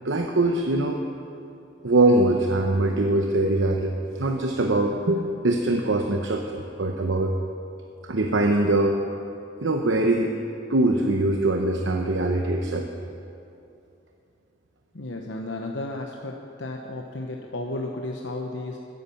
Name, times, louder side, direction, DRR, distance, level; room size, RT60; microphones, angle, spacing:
voice 1, 0.0-1.0 1.8-7.3 8.0-9.0 9.6-10.4 10.7-12.9, right 2 dB, 80° right, 3 dB, 0.9 m, -22 dB
voice 2, 14.9-18.8, left 2 dB, 75° left, 1 dB, 1.0 m, -33 dB
15.0 x 10.5 x 7.2 m, 2.7 s
head